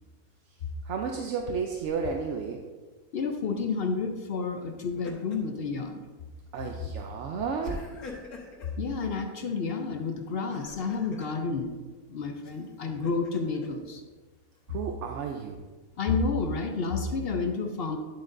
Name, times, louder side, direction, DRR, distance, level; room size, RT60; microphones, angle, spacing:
voice 1, 0.8-2.6 6.5-7.8 14.7-15.6, right 5 dB, 65° right, 2 dB, 0.8 m, -32 dB
Laughter, 1.8-2.3 4.6-5.6 6.0-6.2 7.6-8.8 10.3-11.4 12.4-13.7, left 2 dB, 75° left, 1.6 m, -44 dB
voice 2, 3.1-6.0 8.8-11.8 12.1-14.0 16.0-18.0, left 4 dB, 60° left, 5 dB, 0.6 m, -30 dB
9.7 x 7.6 x 2.6 m, 1.3 s
omnidirectional pair, 1.5 m